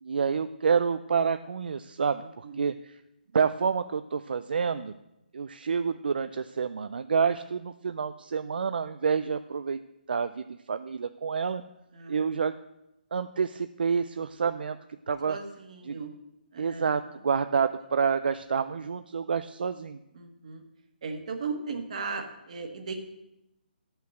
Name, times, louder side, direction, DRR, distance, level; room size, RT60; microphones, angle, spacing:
voice 1, 0.0-3.0 3.3-4.9 5.3-9.8 10.1-11.6 12.1-12.6 13.1-14.8 15.1-15.4 15.9-16.0 16.6-20.0, right 6 dB, 65° right, 10 dB, 0.4 m, -28 dB
voice 2, 11.9-12.3 15.2-16.1 16.5-17.0 20.1-20.6 21.0-23.0, right 4 dB, 40° right, 5 dB, 1.4 m, -37 dB
10.0 x 5.7 x 7.6 m, 0.89 s
hypercardioid pair, 170°, 6 cm